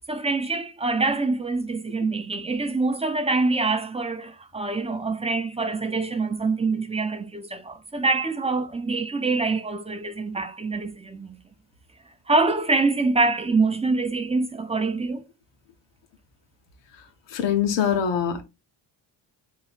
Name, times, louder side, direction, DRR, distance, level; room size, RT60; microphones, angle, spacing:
voice 1, 0.1-11.4 12.3-15.2, right 3 dB, 15° right, 0.6 m, -25 dB
voice 2, 17.3-18.4, left 8 dB, 75° left, 1.1 m, -23 dB
3.4 x 3.0 x 4.0 m
cardioid pair, 85°, 44 cm